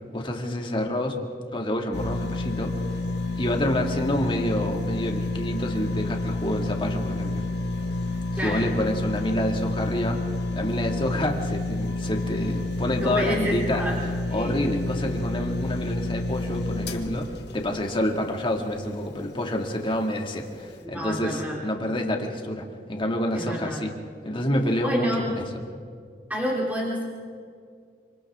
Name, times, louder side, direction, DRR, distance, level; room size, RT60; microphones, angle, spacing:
voice 1, 0.1-1.2 1.5-2.7 3.4-7.4 8.4-10.2 10.5-13.8 14.3-23.9 24.2-25.4, left 1 dB, 30° left, 2 dB, 2.2 m, -28 dB
sound 1, 1.9-19.1 19.6-19.7, left 2 dB, 70° left, 1.8 m, -29 dB
voice 2, 13.0-14.0 14.3-14.6 20.8-21.6 23.3-23.9 24.8-25.2 26.3-27.0, equal, 10° right, -5 dB, 3.4 m, -29 dB
27.5 x 26.5 x 3.7 m, 2.2 s
head